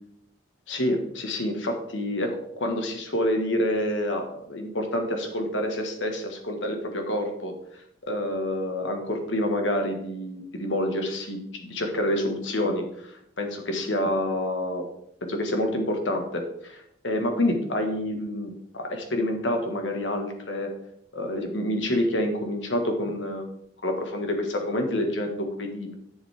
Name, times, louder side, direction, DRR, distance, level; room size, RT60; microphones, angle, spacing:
voice 1, 0.7-7.5 8.1-14.8 15.2-20.7 21.1-25.9, left 1 dB, 85° left, 4 dB, 1.7 m, -28 dB
10.0 x 7.2 x 3.6 m, 0.72 s
head